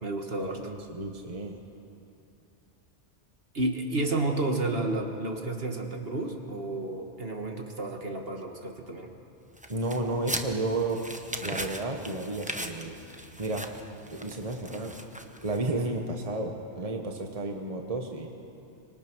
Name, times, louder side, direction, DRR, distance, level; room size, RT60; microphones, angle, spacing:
voice 1, 0.0-0.7 3.5-9.1, right 2 dB, 55° right, 3 dB, 2.0 m, -31 dB
voice 2, 0.5-1.5 9.7-11.0 11.4-12.9 13.4-13.7 14.1-15.1 15.4-18.3, right 2 dB, 30° right, 3 dB, 1.5 m, -32 dB
sound 1, 9.6-15.8, right 1 dB, 5° right, 1.0 m, -39 dB
25.0 x 22.0 x 6.3 m, 2.8 s
omnidirectional pair, 1.2 m